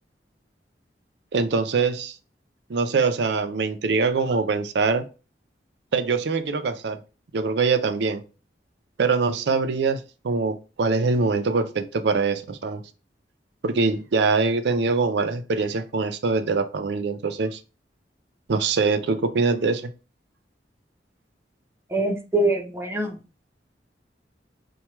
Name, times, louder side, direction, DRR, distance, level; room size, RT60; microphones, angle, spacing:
voice 1, 1.3-2.1 2.7-5.1 5.9-7.0 7.3-8.2 9.0-12.8 13.6-17.6 18.5-19.9, right 4 dB, 70° right, 0.5 m, -23 dB
voice 2, 21.9-23.2, right 2 dB, 15° right, 0.7 m, -24 dB
4.4 x 2.3 x 2.9 m
head